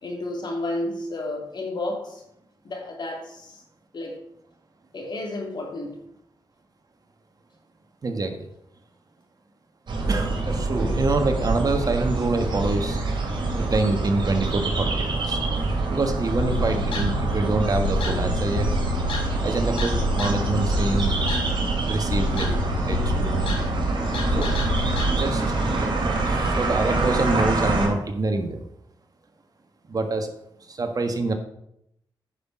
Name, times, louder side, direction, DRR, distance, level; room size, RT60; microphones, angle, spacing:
voice 1, 0.0-2.2 2.6-3.6 3.9-4.2 4.9-6.0, left 2 dB, 55° left, 1 dB, 3.0 m, -31 dB
voice 2, 8.0-8.5 10.1-13.0 13.5-15.4 15.9-18.7 19.4-21.2 21.9-23.6 24.3-24.6 25.2-25.4 25.7-28.6 29.9-30.3 30.7-31.3, right 2 dB, 45° right, 6 dB, 1.5 m, -26 dB
sound 1, 9.9-27.9, right 3 dB, 60° right, 3.2 m, -25 dB
sound 2, 16.4-25.1, left 3 dB, 90° left, 2.5 m, -29 dB
9.8 x 6.0 x 6.2 m, 0.76 s
cardioid pair, 70°, 9 cm